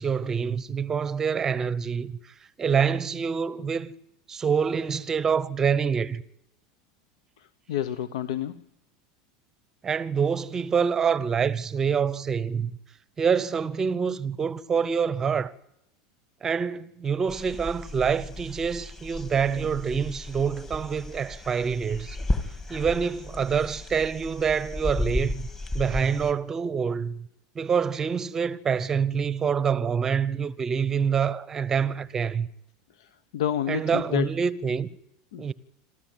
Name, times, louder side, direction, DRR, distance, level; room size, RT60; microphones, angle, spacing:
voice 1, 0.0-2.1 2.6-3.9 4.3-6.2 9.8-12.7 13.2-15.5 16.4-22.2 22.7-25.5 25.7-27.3 27.5-32.5 33.7-34.9 35.4-35.5, right 6 dB, 15° right, 0.7 m, -26 dB
voice 2, 7.7-8.6 33.0-33.1 33.3-34.3 35.3-35.4, left 10 dB, 90° left, 0.9 m, -28 dB
sound 1, 17.3-26.3, left 2 dB, 15° left, 1.8 m, -34 dB
26.5 x 14.0 x 9.2 m
supercardioid pair, 160°, 3 cm